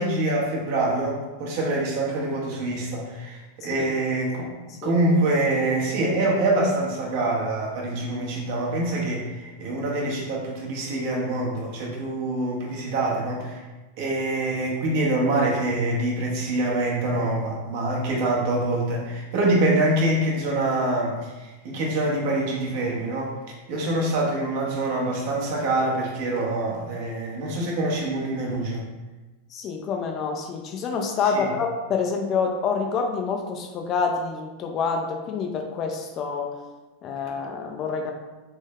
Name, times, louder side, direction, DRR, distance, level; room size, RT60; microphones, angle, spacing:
voice 1, 0.0-4.5 4.8-13.6 14.0-23.3 23.7-28.9 31.2-31.5, right 2 dB, 50° right, -2 dB, 1.0 m, -25 dB
voice 2, 29.5-36.5 37.0-38.1, left 5 dB, 35° left, 3 dB, 0.5 m, -27 dB
3.4 x 3.1 x 3.5 m, 1.2 s
figure-of-eight pair, 90°, 0 cm